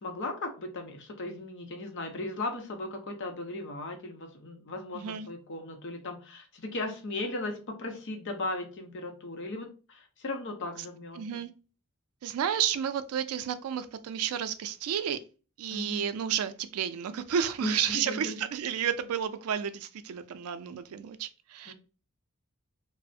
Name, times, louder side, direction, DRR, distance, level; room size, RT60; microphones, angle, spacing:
voice 1, 0.0-11.2 15.7-16.1 17.6-18.4 21.7-21.8, left 2 dB, 55° left, 4 dB, 0.7 m, -37 dB
voice 2, 4.9-5.3 11.2-11.5 12.2-15.2 15.6-21.7, right 8 dB, 75° right, 11 dB, 0.3 m, -31 dB
3.2 x 2.0 x 2.6 m, 0.35 s
head